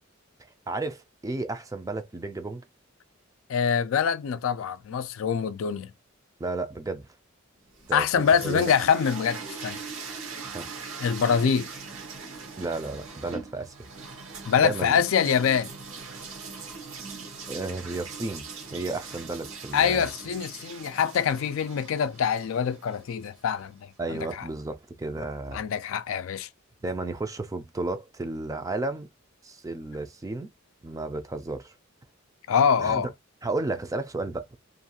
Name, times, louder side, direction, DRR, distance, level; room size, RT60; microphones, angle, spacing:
voice 1, 0.7-2.6 6.4-7.1 7.9-8.7 10.5-10.7 12.6-13.7 14.6-15.0 17.0-18.5 18.7-20.1 24.0-25.6 26.8-29.1 29.4-30.5 30.8-31.7 32.8-33.0 33.4-34.4, right 2 dB, 15° right, 0.3 m, -33 dB
voice 2, 3.5-5.9 7.9-9.8 11.0-11.7 14.5-15.7 19.7-24.5 25.5-26.5 32.5-33.1, left 7 dB, 75° left, 0.4 m, -25 dB
sound 1, 7.7-23.7, right 4 dB, 75° right, 0.9 m, -41 dB
2.5 x 2.3 x 2.7 m
head